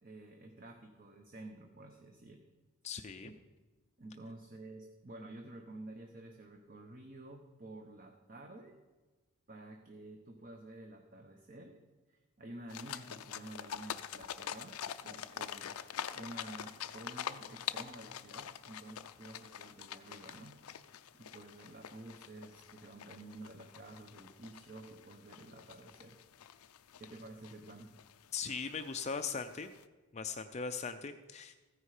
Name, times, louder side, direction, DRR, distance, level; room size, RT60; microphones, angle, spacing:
voice 1, 0.0-2.4 3.2-3.3 4.0-8.8 9.5-11.8 12.1-14.8 15.0-15.7 16.1-20.6 21.1-26.2 27.0-27.9, right 2 dB, 40° right, 3 dB, 0.9 m, -51 dB
voice 2, 2.8-3.3 28.3-29.7 30.1-31.6, left 5 dB, 30° left, 8 dB, 0.4 m, -39 dB
sound 1, 12.7-29.8, left 9 dB, 85° left, 0.5 m, -46 dB
14.5 x 9.8 x 4.9 m, 1.3 s
head